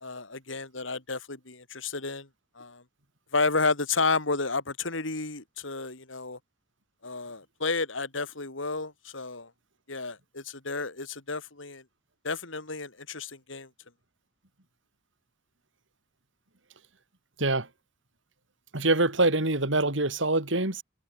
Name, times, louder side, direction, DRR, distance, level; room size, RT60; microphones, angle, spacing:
voice 1, 0.0-2.3 2.6-2.8 3.3-6.4 7.0-9.5 9.9-11.8 12.2-13.7, left 3 dB, 85° left, 3.5 m, -31 dB
voice 2, 18.7-20.8, right 2 dB, 80° right, 4.0 m, -25 dB
head